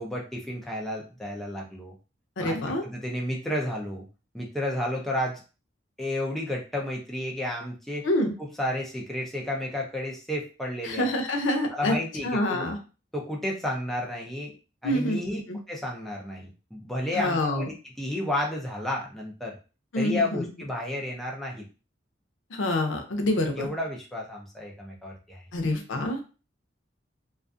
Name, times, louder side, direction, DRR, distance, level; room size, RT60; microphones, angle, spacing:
voice 1, 0.0-1.9 2.4-4.1 4.3-5.4 6.0-8.1 8.4-11.1 11.7-12.7 13.1-14.5 14.8-19.6 20.0-21.7 23.5-25.4, left 1 dB, ahead, -2 dB, 0.5 m, -32 dB
voice 2, 2.4-2.8 8.0-8.3 10.8-11.9 12.2-12.8 14.8-15.2 15.5-15.6 17.1-17.7 19.9-20.5 22.5-23.7 25.5-26.2, left 1 dB, 85° left, 4 dB, 0.6 m, -26 dB
2.4 x 2.3 x 2.4 m, 0.33 s
head